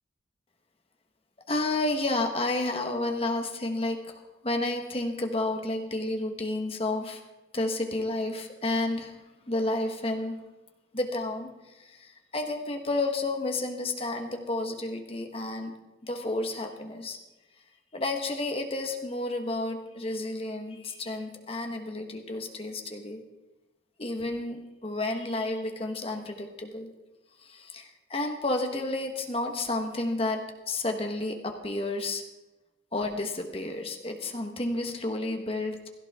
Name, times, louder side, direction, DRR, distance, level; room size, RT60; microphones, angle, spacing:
voice 1, 1.5-7.2 7.5-9.2 9.5-10.4 10.9-17.2 17.9-23.2 24.0-26.9 27.4-32.2 32.9-35.9, left 2 dB, 30° left, 4 dB, 1.4 m, -31 dB
16.5 x 14.0 x 3.7 m, 1.0 s
head